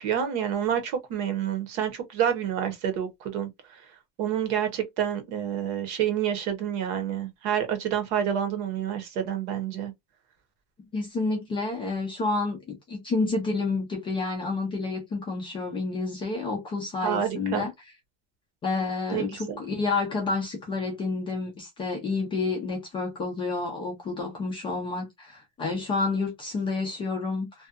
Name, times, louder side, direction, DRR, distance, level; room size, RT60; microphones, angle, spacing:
voice 1, 0.0-3.5 4.2-9.9 17.0-17.7 19.1-19.6, right 9 dB, 60° right, 0.9 m, -28 dB
voice 2, 10.9-17.7 18.6-27.7, left 3 dB, 15° left, 0.3 m, -29 dB
2.7 x 2.2 x 2.3 m
cardioid pair, 180°, 35 cm